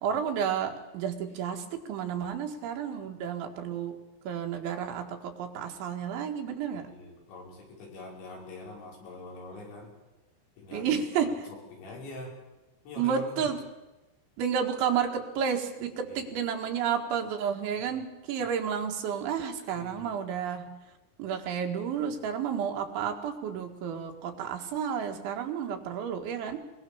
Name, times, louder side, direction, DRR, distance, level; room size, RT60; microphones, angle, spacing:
voice 1, 0.0-4.0 4.3-6.9 10.7-11.4 13.0-13.6 14.4-20.8 21.2-26.6, right 7 dB, 90° right, 4 dB, 4.3 m, -31 dB
voice 2, 6.7-9.9 10.6-12.3 12.8-13.5 16.1-16.4 18.4-18.5 19.7-20.2 22.3-22.4, left 2 dB, 80° left, -1 dB, 8.0 m, -44 dB
22.5 x 22.5 x 7.2 m, 1.0 s
omnidirectional pair, 5.2 m